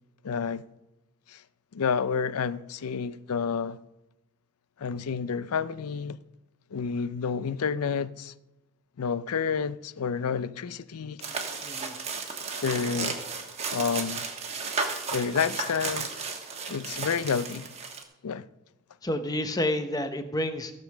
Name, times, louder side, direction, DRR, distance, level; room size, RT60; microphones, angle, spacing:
voice 1, 0.2-0.7 1.3-1.4 1.7-3.8 4.8-6.2 6.7-8.3 9.0-11.2 12.6-13.2 13.7-14.3 15.1-16.1 16.7-17.7 18.2-18.5, left 6 dB, 85° left, 0.5 m, -29 dB
Trash sorting small, 11.2-18.0, right 4 dB, 30° right, 1.2 m, -34 dB
voice 2, 11.6-12.0 19.0-20.7, left 1 dB, 15° left, 0.7 m, -29 dB
15.5 x 5.3 x 6.3 m
head